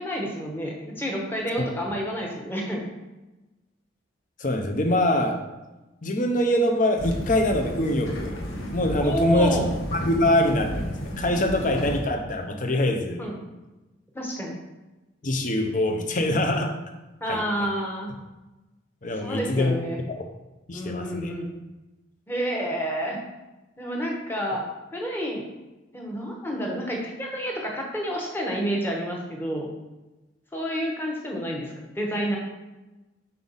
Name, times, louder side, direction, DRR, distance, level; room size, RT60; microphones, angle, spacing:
voice 1, 0.0-2.8 9.0-9.7 13.2-13.4 14.1-14.6 17.2-18.1 19.2-20.0 20.7-21.5 22.3-23.2 23.8-24.6 24.9-25.4 25.9-29.7 30.5-32.4, equal, 10° left, -1 dB, 1.0 m, -29 dB
voice 2, 4.4-5.4 6.0-8.4 8.7-13.3 15.2-16.7 17.3-17.4 19.0-19.8 20.1-20.2 20.7-21.3, left 1 dB, 40° left, 4 dB, 0.7 m, -24 dB
sound 1, 7.0-12.0, equal, 80° left, 1.0 m, -32 dB
5.7 x 4.9 x 4.0 m, 1.1 s
head